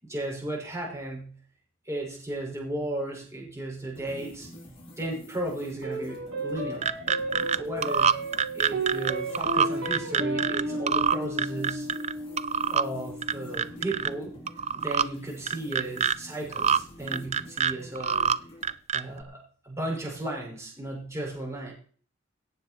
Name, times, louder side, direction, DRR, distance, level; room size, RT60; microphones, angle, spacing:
voice 1, 0.0-1.3 1.8-4.5 5.0-6.8 7.5-8.2 8.5-11.9 12.7-14.4 14.7-18.3 18.9-21.7, right 1 dB, 15° right, -2 dB, 6.1 m, -35 dB
sound 1, 4.0-18.7, equal, 30° left, 3.7 m, -47 dB
sound 2, 5.8-14.4, right 1 dB, 80° right, 5.6 m, -34 dB
sound 3, 6.6-7.6 7.8-10.6 10.9-12.1 12.4-12.9 13.2-14.1 14.5-15.0 15.5-16.1 16.5-16.8 17.1-18.4 18.6-19.2, right 7 dB, 35° right, 0.5 m, -25 dB
17.0 x 7.8 x 4.6 m, 0.43 s
head